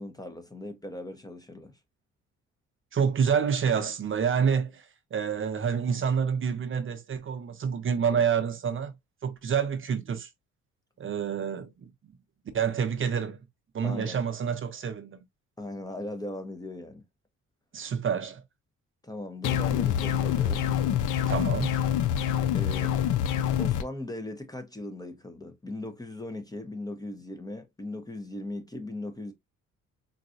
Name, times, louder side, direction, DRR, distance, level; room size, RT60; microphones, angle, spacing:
voice 1, 0.0-1.7 13.8-14.2 15.6-17.0 19.0-20.7 22.5-23.0 23.6-29.3, left 1 dB, 10° left, 0.7 m, -38 dB
voice 2, 2.9-4.8 5.1-8.9 9.2-10.3 11.0-11.9 12.5-13.4 13.7-15.2 17.7-18.4 21.3-21.8, right 7 dB, 40° right, 0.7 m, -28 dB
sound 1, 19.4-23.8, left 10 dB, 85° left, 0.5 m, -26 dB
3.9 x 2.3 x 2.5 m
cardioid pair, 90°, 30 cm